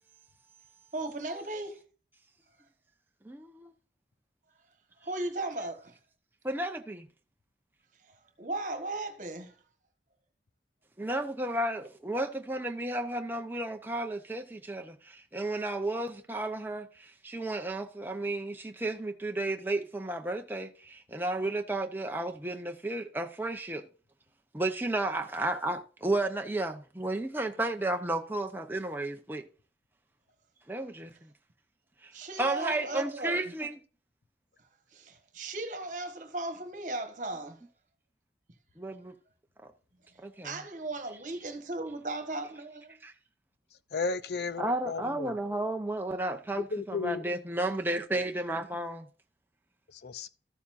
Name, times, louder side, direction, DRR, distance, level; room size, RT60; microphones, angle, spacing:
voice 1, 0.9-1.8 5.0-5.9 8.1-9.6 32.1-33.4 34.9-37.6 40.4-42.8, right 2 dB, 45° right, 1.5 m, -36 dB
voice 2, 3.2-3.7 6.4-7.1 11.0-23.9 24.5-29.4 30.7-31.3 32.0-32.1 32.4-33.8 38.8-39.1 40.2-40.6 44.6-49.1, right 2 dB, 10° right, 0.7 m, -33 dB
voice 3, 43.9-45.3 46.6-47.2 49.9-50.3, left 4 dB, 70° left, 0.6 m, -34 dB
13.5 x 7.1 x 2.6 m
head